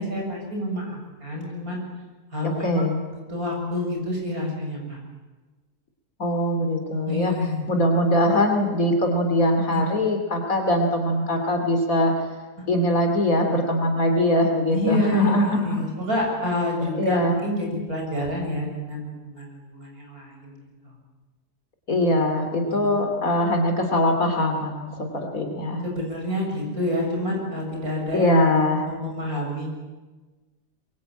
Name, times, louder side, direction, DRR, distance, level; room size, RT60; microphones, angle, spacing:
voice 1, 0.0-1.8 2.3-2.9 3.3-5.0 7.1-7.6 9.7-9.8 12.6-12.7 14.7-20.6 20.8-20.9 25.8-28.4 28.9-29.7, left 1 dB, 60° right, 0 dB, 7.6 m, -28 dB
voice 2, 2.4-3.0 6.2-7.3 7.7-12.2 12.7-15.9 16.9-17.3 21.9-25.8 28.1-28.8, left 1 dB, 55° left, 4 dB, 3.2 m, -22 dB
24.0 x 22.5 x 8.9 m, 1.2 s
omnidirectional pair, 1.8 m